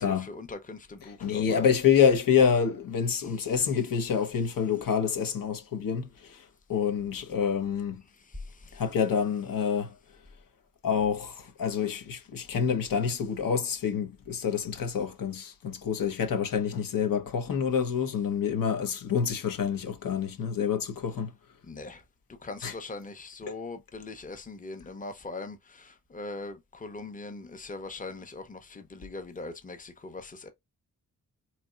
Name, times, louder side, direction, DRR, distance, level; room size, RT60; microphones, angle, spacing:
voice 1, 0.0-1.7 8.2-8.8 21.6-22.0 22.3-30.5, left 3 dB, 25° left, 0.8 m, -41 dB
voice 2, 1.2-8.0 8.7-10.0 10.8-21.3 22.6-22.7 23.5-23.6, left 7 dB, 80° left, 1.1 m, -27 dB
4.2 x 3.1 x 2.4 m
wide cardioid pair, 130°, 33 cm